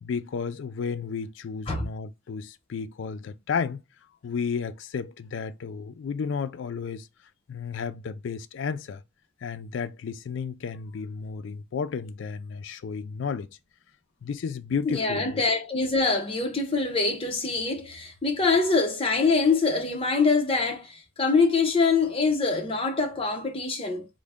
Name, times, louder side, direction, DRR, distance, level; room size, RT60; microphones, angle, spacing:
voice 1, 0.0-3.8 4.2-7.1 7.5-9.0 9.4-13.5 14.2-15.4, left 6 dB, 60° left, 0.3 m, -32 dB
voice 2, 14.8-24.1, left 4 dB, 25° left, 0.7 m, -24 dB
3.8 x 2.1 x 3.4 m
head